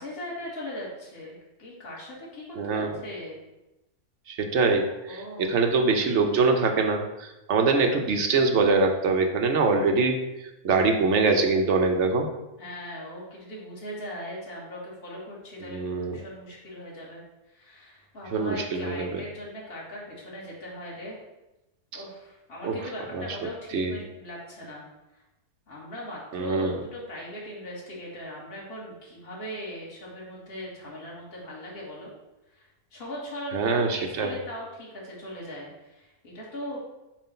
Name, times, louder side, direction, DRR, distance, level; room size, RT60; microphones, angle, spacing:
voice 1, 0.0-3.4 5.1-5.5 12.6-17.2 17.5-21.2 21.9-24.8 25.1-25.2 25.7-32.1 32.5-33.6 33.9-36.8, equal, 40° left, -5 dB, 1.8 m, -39 dB
voice 2, 2.6-2.9 4.3-12.3 15.7-16.2 18.3-19.2 21.9-22.0 22.6-22.8 23.1-23.2 23.7-23.9 26.3-26.8 33.5-34.4, right 4 dB, 55° right, 4 dB, 0.9 m, -24 dB
7.4 x 2.5 x 5.6 m, 0.97 s
omnidirectional pair, 1.6 m